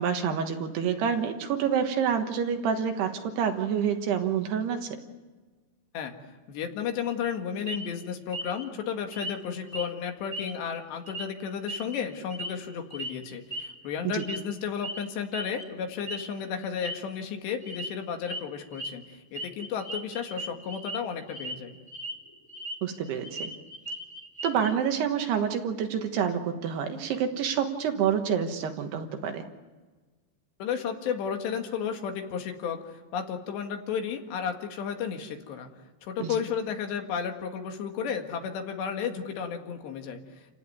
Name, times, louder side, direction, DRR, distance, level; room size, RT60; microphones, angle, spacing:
voice 1, 0.0-4.9 14.1-14.2 22.8-23.5 24.4-29.4 36.2-36.4, right 7 dB, 70° right, 6 dB, 3.2 m, -28 dB
voice 2, 6.5-21.8 30.6-35.7 36.0-40.2, left 7 dB, 70° left, 4 dB, 3.9 m, -33 dB
sound 1, 7.7-7.9 8.3-8.6 9.1-9.4 9.7-9.9 10.3-10.8 11.1-11.3 11.7-12.6 12.9-13.1 13.5-13.7 14.2-14.5 14.8-15.0 15.3-15.6 16.1-16.3 16.6-17.0 17.6-17.9 18.2-18.4 18.7-18.9 19.3-21.0 21.3-21.5 21.9-22.8 23.1-24.7, right 1 dB, 5° left, 2.1 m, -37 dB
28.5 x 16.5 x 9.5 m, 1.3 s
omnidirectional pair, 5.2 m